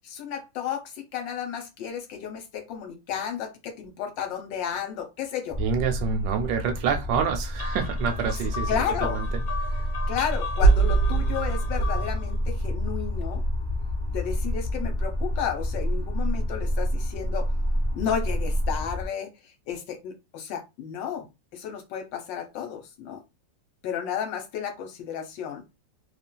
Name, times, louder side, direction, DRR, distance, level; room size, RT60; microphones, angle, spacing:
voice 1, 0.0-5.6 8.7-9.2 10.1-13.4 14.1-17.5 17.9-19.3 19.7-21.3 21.5-23.2 23.8-25.6, left 8 dB, 75° left, 1.4 m, -32 dB
sound 1, 5.5-19.1, equal, 5° left, 0.9 m, -28 dB
voice 2, 5.6-9.3, right 6 dB, 80° right, 1.2 m, -27 dB
sound 2, 7.6-12.3, right 4 dB, 60° left, 1.0 m, -26 dB
2.9 x 2.4 x 2.2 m
omnidirectional pair, 2.0 m